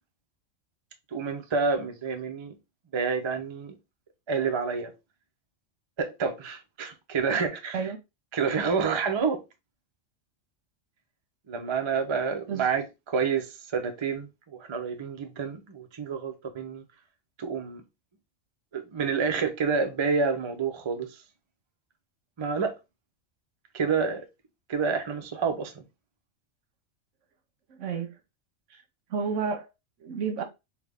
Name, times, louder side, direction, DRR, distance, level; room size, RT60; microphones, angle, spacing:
voice 1, 1.1-2.6 2.9-3.8 4.3-4.9 6.0-7.8 8.3-9.4 11.5-16.8 17.4-17.8 18.7-21.2 22.4-22.8 23.7-24.3 24.7-25.8, right 5 dB, 40° right, 0.4 m, -28 dB
voice 2, 27.7-28.1 28.7-28.8 29.1-29.7 30.0-30.4, right 6 dB, 75° right, 1.1 m, -31 dB
3.5 x 2.4 x 3.3 m
omnidirectional pair, 1.3 m